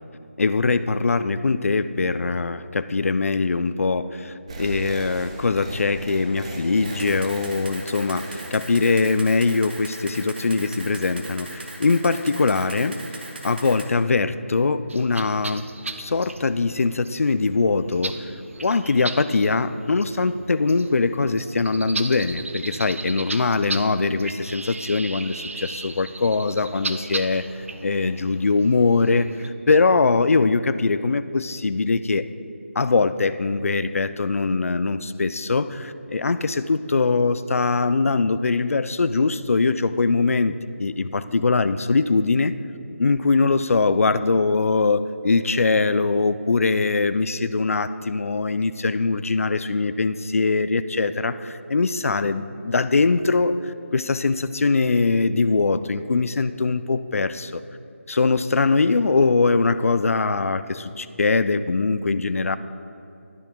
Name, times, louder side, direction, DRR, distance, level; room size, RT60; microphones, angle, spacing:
voice 1, 0.4-13.0 13.4-15.6 16.0-18.2 18.6-27.5 27.8-32.3 32.8-42.5 43.0-53.6 53.9-57.6 58.1-62.6, left 3 dB, 80° left, 13 dB, 0.4 m, -22 dB
sound 1, 4.5-9.7, right 2 dB, 25° right, 0.7 m, -38 dB
Camera, 6.8-13.9, right 2 dB, 45° right, 1.0 m, -39 dB
sound 2, 14.9-29.5, right 3 dB, 65° right, 0.6 m, -36 dB
12.0 x 10.5 x 2.2 m, 2.7 s
figure-of-eight pair, 165°, 8 cm